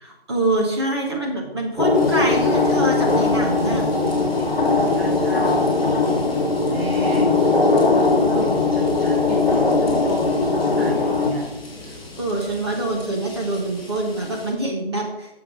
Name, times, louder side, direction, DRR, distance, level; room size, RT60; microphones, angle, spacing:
voice 1, 0.0-3.8 12.2-15.3, right 2 dB, 25° right, -1 dB, 1.3 m, -25 dB
sound 1, 1.8-11.3, left 3 dB, 55° left, 1.4 m, -19 dB
sound 2, 1.9-14.5, left 2 dB, 10° left, 1.8 m, -41 dB
voice 2, 4.0-5.6 6.7-7.4 8.3-11.5, right 1 dB, 75° right, -5 dB, 3.5 m, -32 dB
11.0 x 7.0 x 3.8 m, 0.93 s
figure-of-eight pair, 170°, 31 cm